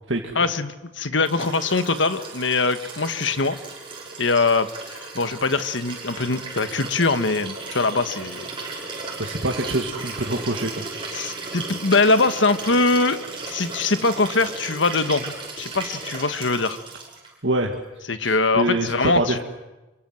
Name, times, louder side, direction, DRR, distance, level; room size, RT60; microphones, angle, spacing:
voice 1, 0.3-3.6 4.2-8.5 11.1-13.2 13.5-16.8 18.1-19.4, left 3 dB, 75° left, 10 dB, 1.5 m, -22 dB
Liquid, 1.2-17.3 18.6-18.7, right 3 dB, 25° right, 6.8 m, -35 dB
voice 2, 9.2-10.8 17.4-17.8 18.2-19.4, right 2 dB, 70° right, 1 dB, 2.1 m, -25 dB
27.0 x 24.0 x 7.7 m, 1.1 s
head